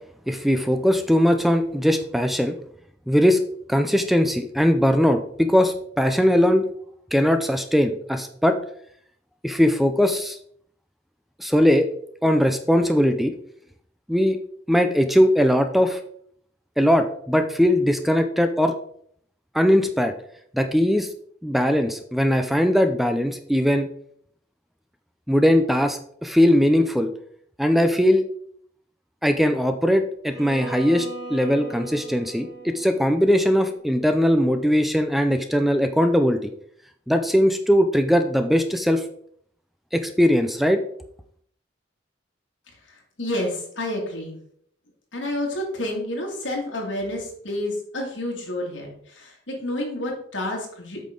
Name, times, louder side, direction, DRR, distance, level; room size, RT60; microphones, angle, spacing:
voice 1, 0.3-2.6 3.1-3.4 3.7-6.6 7.1-8.6 9.4-10.4 11.4-11.9 12.2-13.3 14.1-14.4 14.7-16.0 16.8-18.7 19.5-20.1 20.5-21.1 21.4-23.9 25.3-27.1 27.6-28.2 29.2-36.5 37.1-39.0 39.9-40.8, equal, ahead, 7 dB, 0.4 m, -20 dB
Bowed string instrument, 30.2-34.3, right 3 dB, 65° right, 2.7 m, -39 dB
voice 2, 42.9-44.4 45.1-51.0, left 1 dB, 70° left, 0 dB, 2.4 m, -29 dB
8.3 x 5.7 x 3.8 m, 0.65 s
head